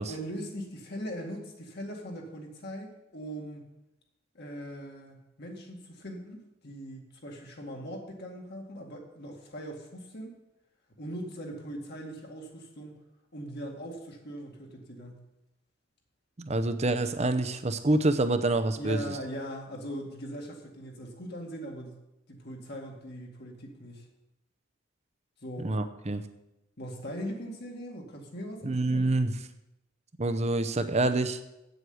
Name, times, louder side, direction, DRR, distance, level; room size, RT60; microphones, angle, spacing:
voice 1, 0.1-3.6 4.3-10.3 11.0-12.9 13.3-15.2 18.8-22.0 22.3-24.1 25.4-25.7 26.8-29.0, equal, 55° left, 1 dB, 2.1 m, -40 dB
voice 2, 16.4-19.2 25.6-26.2 28.6-29.3 30.2-31.4, right 2 dB, 35° right, 10 dB, 0.7 m, -27 dB
8.4 x 7.8 x 7.9 m, 0.93 s
head